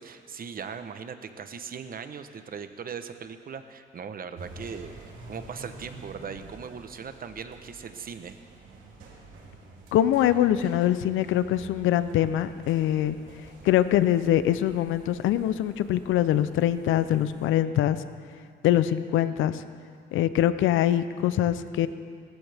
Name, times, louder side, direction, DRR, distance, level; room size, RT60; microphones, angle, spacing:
voice 1, 0.0-4.9 5.3-8.4, right 6 dB, 45° right, 9 dB, 1.0 m, -39 dB
sound 1, 4.3-17.5, right 3 dB, 85° right, 2.9 m, -48 dB
voice 2, 9.9-13.2 13.6-18.0 18.6-19.6 20.1-21.9, left 12 dB, 85° left, 13 dB, 0.6 m, -23 dB
19.5 x 14.5 x 3.5 m, 2.2 s
cardioid pair, 90°, 20 cm